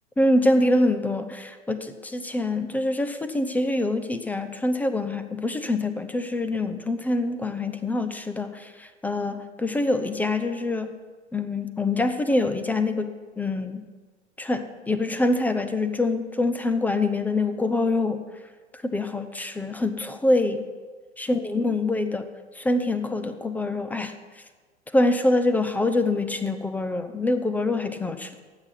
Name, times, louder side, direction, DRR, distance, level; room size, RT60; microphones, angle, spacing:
voice 1, 0.2-10.9 11.3-13.8 14.4-18.2 18.8-20.6 21.2-22.2 22.6-24.1 24.9-28.3, left 2 dB, 5° left, 10 dB, 0.4 m, -25 dB
13.0 x 8.3 x 5.7 m, 1.4 s
hypercardioid pair, 105°, 36 cm